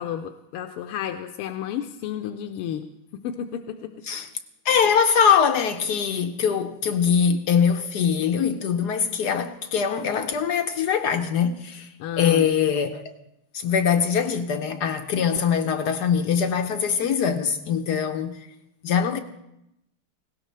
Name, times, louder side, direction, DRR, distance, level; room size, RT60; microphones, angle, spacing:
voice 1, 0.0-2.8 3.1-3.9 12.0-12.5, left 9 dB, 85° left, 1.6 m, -32 dB
voice 2, 4.6-13.1 13.5-18.4 18.8-19.2, left 7 dB, 70° left, 1.0 m, -22 dB
19.0 x 17.5 x 3.2 m
omnidirectional pair, 2.4 m